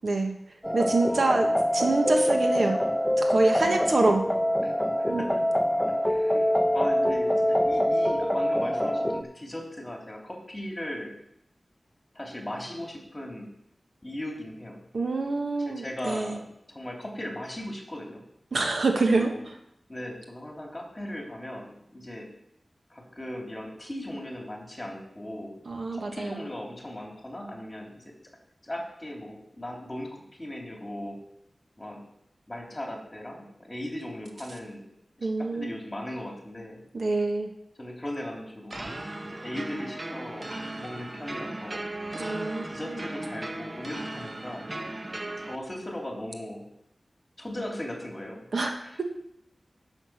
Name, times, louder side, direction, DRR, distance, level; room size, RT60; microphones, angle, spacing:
voice 1, 0.0-0.4 0.7-2.8 3.2-4.2 5.1-5.2 6.3-6.4 14.9-16.4 18.5-19.5 25.6-26.5 35.2-35.7 36.9-37.5 42.1-42.7 48.5-48.7 49.0-49.1, right 3 dB, 75° right, 3 dB, 1.5 m, -26 dB
sound 1, 0.6-9.2, equal, 10° left, 0.8 m, -25 dB
voice 2, 6.1-11.1 12.1-13.5 14.0-14.8 15.6-16.4 16.7-18.2 19.1-19.4 19.9-22.3 22.9-25.6 25.9-28.1 28.6-31.2 31.8-32.0 32.5-34.8 35.2-35.3 35.5-36.8 37.8-38.8 39.2-41.8 42.6-44.7 45.4-46.6 47.4-48.4 48.8-49.0, left 1 dB, 25° left, 0 dB, 3.3 m, -38 dB
sound 2, 38.7-45.6, right 1 dB, 35° right, 1.0 m, -37 dB
10.5 x 7.1 x 5.9 m, 0.76 s
wide cardioid pair, 70°, 0 cm